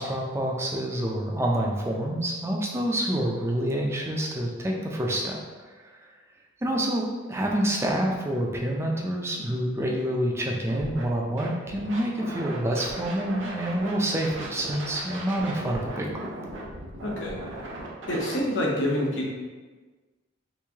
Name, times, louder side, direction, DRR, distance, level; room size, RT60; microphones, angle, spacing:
voice 1, 0.0-5.4 6.6-7.0 7.3-16.3, right 1 dB, 15° right, -1 dB, 0.4 m, -27 dB
Scratching (performance technique), 10.7-11.0 11.4-13.9 14.2-18.4, right 2 dB, 75° right, 0.7 m, -38 dB
voice 2, 17.0-17.3 18.1-19.3, left 1 dB, 65° left, -2 dB, 0.8 m, -27 dB
3.1 x 2.6 x 3.4 m, 1.3 s
head